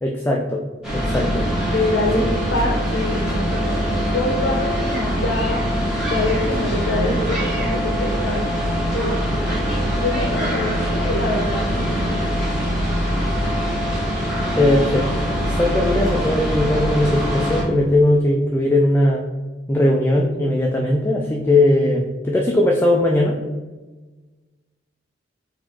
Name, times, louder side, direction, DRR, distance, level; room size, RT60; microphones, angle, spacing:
voice 1, 0.0-0.6 0.9-1.4 14.6-19.3 19.7-23.4, left 1 dB, 10° left, -1 dB, 0.3 m, -19 dB
sound 1, 0.8-17.6, equal, 5° right, 1.4 m, -23 dB
voice 2, 1.7-5.8 6.1-8.6 8.9-12.3, left 2 dB, 70° left, 0 dB, 0.7 m, -25 dB
4.2 x 2.9 x 4.3 m, 1.2 s
head